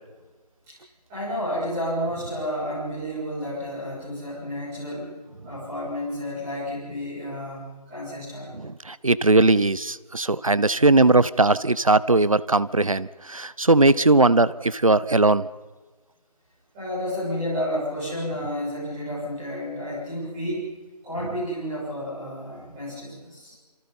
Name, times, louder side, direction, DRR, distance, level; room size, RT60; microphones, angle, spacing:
voice 1, 1.1-5.1 5.4-8.5 16.7-20.8 21.0-23.6, equal, 5° right, -12 dB, 7.5 m, -31 dB
voice 2, 8.6-15.5, right 2 dB, 55° right, 18 dB, 0.9 m, -19 dB
28.0 x 26.5 x 5.6 m, 1.3 s
figure-of-eight pair, 175°, 21 cm